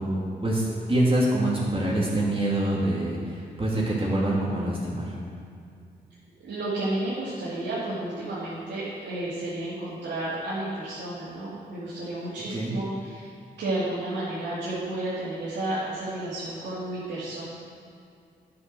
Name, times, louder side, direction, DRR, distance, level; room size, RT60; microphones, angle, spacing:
voice 1, 0.0-5.1 12.5-12.7, right 1 dB, 30° right, -6 dB, 2.7 m, -25 dB
voice 2, 6.4-13.3 13.6-17.4, right 1 dB, 85° right, -10 dB, 2.3 m, -32 dB
9.8 x 5.9 x 6.2 m, 2.3 s
cardioid pair, 55°, 18 cm